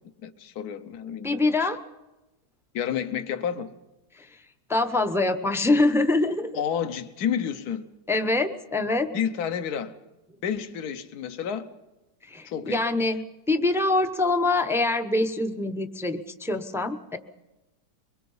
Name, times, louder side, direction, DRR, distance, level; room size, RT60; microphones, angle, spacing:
voice 1, 0.2-1.7 2.7-3.7 6.5-7.8 9.1-9.9 10.4-11.7 12.4-13.0, left 8 dB, 65° left, 1.5 m, -30 dB
voice 2, 1.2-1.8 4.2-4.3 4.7-6.6 8.1-9.1 12.3-17.2, left 2 dB, 5° right, 0.5 m, -24 dB
23.5 x 22.0 x 5.5 m
omnidirectional pair, 1.9 m